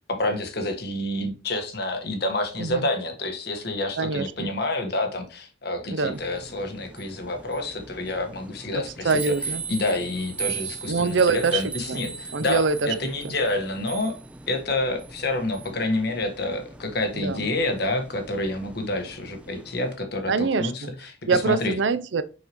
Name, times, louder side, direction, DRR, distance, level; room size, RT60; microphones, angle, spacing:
voice 1, 0.1-9.1 9.7-14.2 14.5-21.7, left 2 dB, 60° left, 1.5 m, -28 dB
voice 2, 4.0-4.5 5.9-6.2 8.7-9.6 10.9-12.9 13.2-13.3 17.1-17.5 20.3-20.9 21.3-22.2, right 4 dB, 75° right, 0.6 m, -25 dB
sound 1, 6.1-20.0, right 5 dB, 5° right, 0.4 m, -39 dB
6.4 x 5.7 x 3.0 m
head